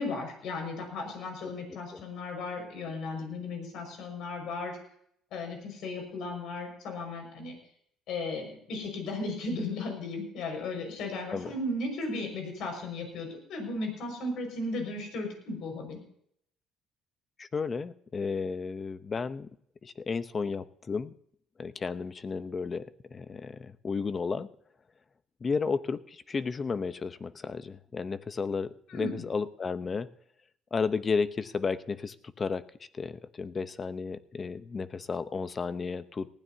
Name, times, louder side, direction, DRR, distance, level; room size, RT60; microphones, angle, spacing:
voice 1, 0.0-4.8 5.3-7.6 8.1-16.0 28.9-29.2, left 2 dB, 70° left, 3 dB, 5.6 m, -35 dB
voice 2, 17.4-19.5 19.8-21.1 21.6-24.5 25.4-30.1 30.7-32.6 32.9-36.3, left 5 dB, 30° left, 13 dB, 0.8 m, -33 dB
19.0 x 15.5 x 2.8 m, 0.68 s
cardioid pair, 115°, 0 cm